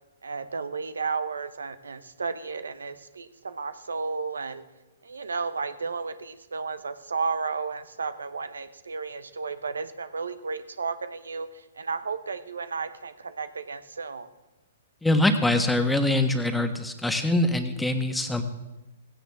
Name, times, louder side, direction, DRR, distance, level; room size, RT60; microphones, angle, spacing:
voice 1, 0.2-4.6 5.0-14.3, right 4 dB, 85° right, 11 dB, 1.1 m, -33 dB
voice 2, 15.0-18.4, left 1 dB, 5° left, 6 dB, 1.4 m, -23 dB
17.0 x 16.5 x 3.6 m, 1.1 s
hypercardioid pair, 125°, 0 cm